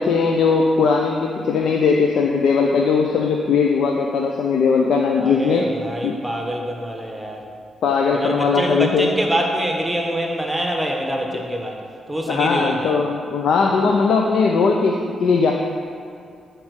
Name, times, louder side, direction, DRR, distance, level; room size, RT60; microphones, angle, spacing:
voice 1, 0.0-5.6 6.0-6.2 7.8-9.1 12.3-15.5, left 5 dB, 75° left, 1 dB, 0.6 m, -19 dB
voice 2, 5.2-7.5 8.1-11.8 12.1-13.0, right 1 dB, 10° right, 1 dB, 1.3 m, -25 dB
8.8 x 4.6 x 6.4 m, 2.3 s
cardioid pair, 70°, 0 cm